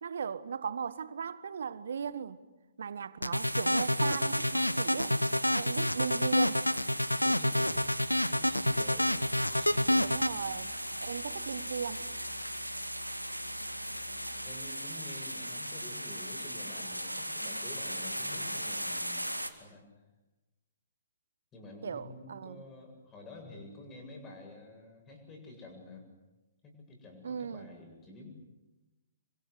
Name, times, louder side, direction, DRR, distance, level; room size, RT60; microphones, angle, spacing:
voice 1, 0.0-2.4 2.8-5.2 5.5-6.6 10.0-12.0 21.8-22.6 27.2-27.7, right 6 dB, 55° right, 1.3 m, -37 dB
sound 1, 3.2-10.3, left 1 dB, 90° left, 0.9 m, -28 dB
sound 2, 3.3-19.5, equal, 90° right, 2.2 m, -38 dB
voice 2, 7.2-7.8 8.3-9.2 9.5-10.1 14.0-14.1 14.3-19.9 21.5-26.0 26.6-28.3, left 2 dB, 20° left, 7.8 m, -49 dB
Musical instrument, 7.6-14.7, left 1 dB, 70° left, 2.7 m, -52 dB
28.0 x 24.5 x 8.2 m
figure-of-eight pair, 120°, 0 cm